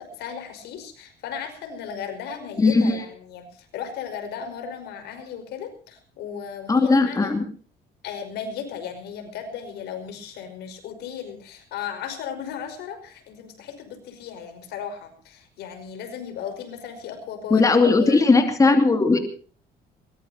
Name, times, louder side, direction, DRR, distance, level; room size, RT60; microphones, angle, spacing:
voice 1, 0.0-7.4 8.0-18.2, left 7 dB, 80° left, 8 dB, 5.3 m, -36 dB
voice 2, 2.6-3.0 6.7-7.4 17.5-19.2, left 3 dB, 20° left, 5 dB, 2.9 m, -18 dB
22.5 x 20.0 x 2.8 m, 0.40 s
cardioid pair, 110°, 17 cm